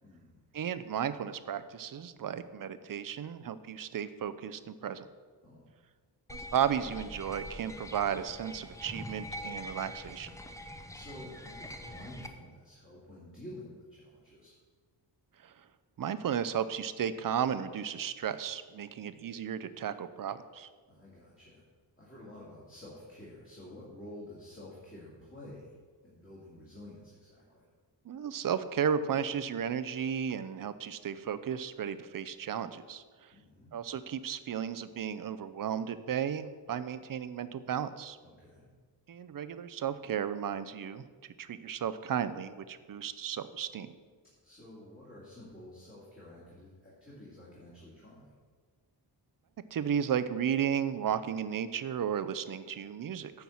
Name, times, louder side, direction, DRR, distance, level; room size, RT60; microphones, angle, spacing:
voice 1, 0.0-0.4 5.4-5.7 10.9-14.5 20.9-21.6 22.0-25.7 26.0-27.7 33.3-33.8 38.2-38.7 44.4-48.3, left 1 dB, 30° left, -8 dB, 2.4 m, -50 dB
voice 2, 0.5-5.1 6.3-10.3 15.4-15.5 16.0-20.7 28.1-33.0 33.7-38.2 39.1-41.0 41.4-43.9 49.7-53.3, right 8 dB, 50° right, 12 dB, 0.5 m, -34 dB
sound 1, 6.3-12.3, left 1 dB, 5° left, 0.6 m, -44 dB
9.4 x 4.6 x 7.1 m, 1.5 s
wide cardioid pair, 115°, 43 cm